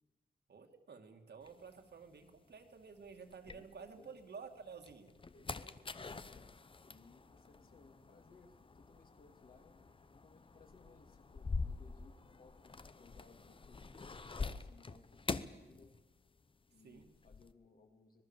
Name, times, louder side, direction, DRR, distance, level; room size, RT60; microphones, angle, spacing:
voice 1, 0.5-5.2 16.8-17.1, right 5 dB, 70° right, 4 dB, 2.4 m, -52 dB
sound 1, 1.5-4.2 4.7-16.4 16.7-17.5, left 4 dB, 30° left, 0.8 m, -46 dB
voice 2, 5.3-6.5 6.8-15.9 16.7-18.2, left 3 dB, 50° left, 4 dB, 3.0 m, -63 dB
25.5 x 19.5 x 7.3 m, 1.1 s
wide cardioid pair, 160°, 18 cm